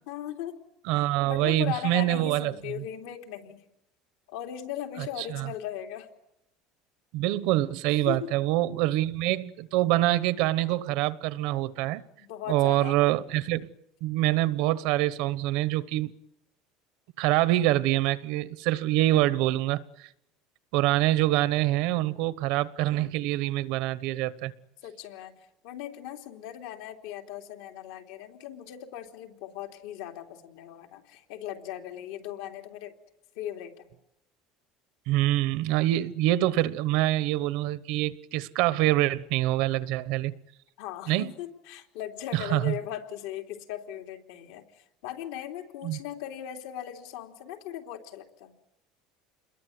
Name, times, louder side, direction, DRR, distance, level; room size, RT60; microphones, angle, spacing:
voice 1, 0.1-0.6 0.9-3.6 4.3-6.1 8.1-8.3 12.2-13.0 24.8-25.3 25.6-32.9 33.3-33.9 40.8-48.5, left 11 dB, 70° left, 3.3 m, -38 dB
voice 2, 0.9-2.5 5.2-5.5 7.1-12.0 12.5-13.7 14.0-16.1 17.2-19.8 20.7-24.5 35.1-40.3 41.1-41.3 42.3-42.8 45.8-46.0, right 15 dB, 60° right, 1.0 m, -25 dB
28.5 x 22.0 x 9.5 m
cardioid pair, 175°, 0 cm